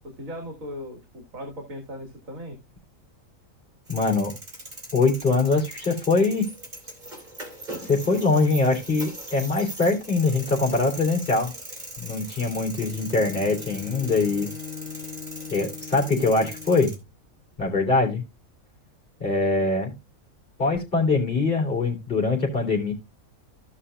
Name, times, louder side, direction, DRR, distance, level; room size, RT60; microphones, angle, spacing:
voice 1, 0.0-2.6, equal, 75° right, 2 dB, 2.6 m, -38 dB
voice 2, 3.9-4.3 4.9-6.5 7.8-11.5 12.0-14.5 15.5-16.9 17.6-18.2 19.2-19.9 20.6-22.9, left 3 dB, 40° left, 1 dB, 3.6 m, -23 dB
sound 1, 3.9-16.9, right 1 dB, 35° right, 3.1 m, -40 dB
Bowed string instrument, 12.8-17.0, left 7 dB, 5° right, 2.9 m, -40 dB
15.5 x 5.6 x 2.5 m, 0.24 s
omnidirectional pair, 1.4 m